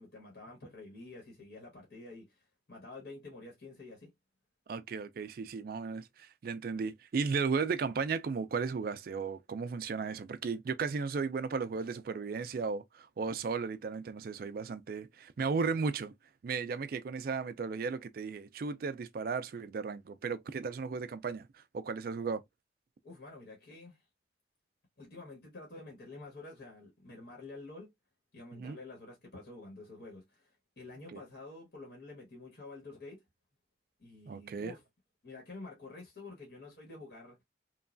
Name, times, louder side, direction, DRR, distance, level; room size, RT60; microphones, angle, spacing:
voice 1, 0.0-4.1 23.0-24.0 25.0-27.9 28.3-33.2 34.0-34.8 35.2-37.4, left 2 dB, 55° left, 1.1 m, -49 dB
voice 2, 4.7-16.1 16.4-21.5 21.7-22.4 28.5-28.8 31.1-31.2 34.3-34.7, right 5 dB, 50° right, 0.3 m, -35 dB
3.1 x 2.2 x 2.4 m
head